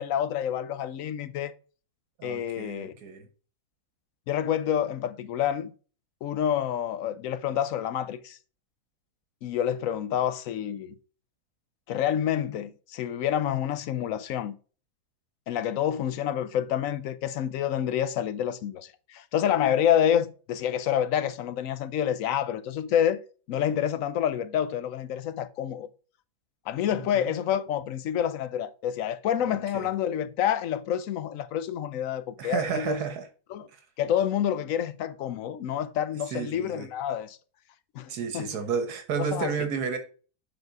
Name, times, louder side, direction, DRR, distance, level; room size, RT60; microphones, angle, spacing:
voice 1, 0.0-1.5 2.2-2.9 4.3-5.7 6.2-8.4 9.4-10.9 11.9-14.5 15.5-23.2 23.5-25.9 26.7-33.0 33.5-33.7 34.0-37.4 37.9-38.5 39.2-39.5, left 10 dB, 70° left, 0.9 m, -28 dB
voice 2, 2.2-3.3 26.9-27.3 29.4-29.9 32.4-33.3 36.3-36.9 38.1-40.0, right 6 dB, 80° right, 1.5 m, -32 dB
7.0 x 4.1 x 4.6 m
omnidirectional pair, 1.6 m